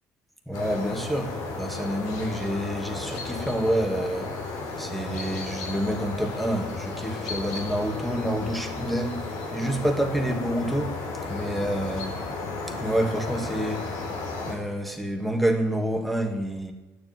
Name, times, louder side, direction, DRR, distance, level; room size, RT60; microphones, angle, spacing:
sound 1, 0.5-14.5, left 3 dB, 85° left, 4.1 m, -34 dB
voice 1, 0.5-4.3 4.8-9.2 9.5-11.0 11.3-12.2 12.7-14.0 14.5-16.7, right 1 dB, ahead, 2.1 m, -28 dB
13.5 x 10.5 x 9.4 m
cardioid pair, 125°, 6 cm